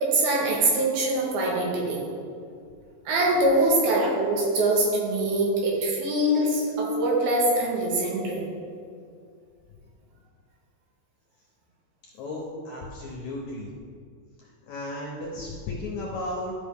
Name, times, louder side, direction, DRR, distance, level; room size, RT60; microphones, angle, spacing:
voice 1, 0.0-2.0 3.1-8.4, right 1 dB, 85° right, -3 dB, 3.4 m, -23 dB
voice 2, 12.2-13.7 14.7-16.5, left 2 dB, 70° left, -2 dB, 1.8 m, -34 dB
12.5 x 5.4 x 3.6 m, 2.3 s
omnidirectional pair, 4.3 m